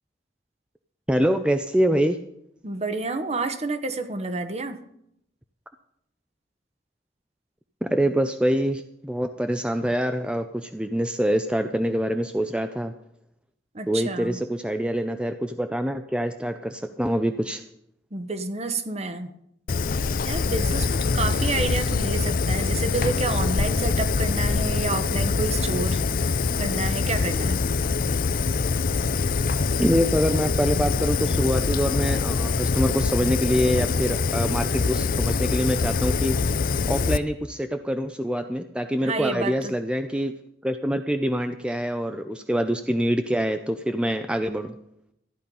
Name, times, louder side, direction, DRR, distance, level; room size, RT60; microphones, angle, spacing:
voice 1, 1.1-2.2 7.8-12.9 13.9-17.6 29.8-40.3 40.6-44.7, equal, 5° right, 8 dB, 0.5 m, -25 dB
voice 2, 2.6-4.8 13.7-14.4 18.1-19.3 20.2-27.6 39.0-39.7, right 3 dB, 35° right, 9 dB, 1.1 m, -29 dB
Fire, 19.7-37.2, left 4 dB, 50° left, 0.5 m, -24 dB
14.5 x 10.5 x 5.4 m, 0.75 s
head